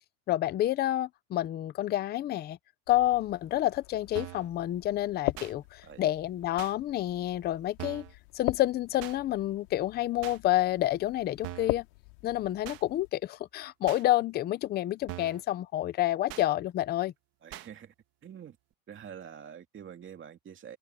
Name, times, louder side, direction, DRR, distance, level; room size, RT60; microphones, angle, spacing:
voice 1, 0.3-2.6 2.9-8.0 8.3-11.9 12.2-17.1, left 14 dB, 20° left, 0.4 m, -29 dB
sound 1, 2.9-13.1, left 23 dB, 85° left, 3.1 m, -41 dB
sound 2, 4.2-4.5 5.4-5.5 6.6-6.7 7.8-8.1 9.0-9.2 10.2-10.4 11.4-11.8 12.6-12.8 13.9-14.0 15.1-15.4 16.3-16.5 17.5-17.7, right 15 dB, 45° right, 1.8 m, -41 dB
voice 2, 17.4-17.9 18.2-18.6 18.9-20.8, right 8 dB, 25° right, 2.4 m, -46 dB
cardioid pair, 160°, 47 cm